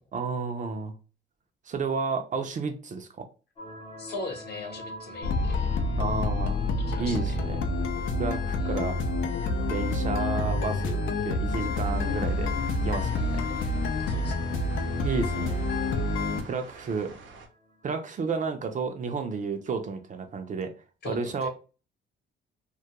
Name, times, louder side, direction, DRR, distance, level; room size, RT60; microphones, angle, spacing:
voice 1, 0.1-0.9 1.7-3.3 6.0-6.6 7.0-7.6 8.2-9.0 9.7-11.0 11.2-12.5 12.8-13.4 15.0-15.7 16.4-17.1 17.8-20.7 21.1-21.5, right 5 dB, 40° right, 6 dB, 0.4 m, -31 dB
sound 1, 3.6-20.1, equal, 25° left, 0.6 m, -48 dB
voice 2, 4.0-5.7 6.9-7.3 8.6-8.8 13.1-13.7 14.1-14.5 21.0-21.5, left 2 dB, 55° left, 2 dB, 0.9 m, -40 dB
sound 2, 5.2-16.4, left 2 dB, 85° left, 0.5 m, -28 dB
sound 3, 11.8-17.5, right 4 dB, 75° right, 0.7 m, -48 dB
2.3 x 2.2 x 2.8 m, 0.34 s
cardioid pair, 90°, 20 cm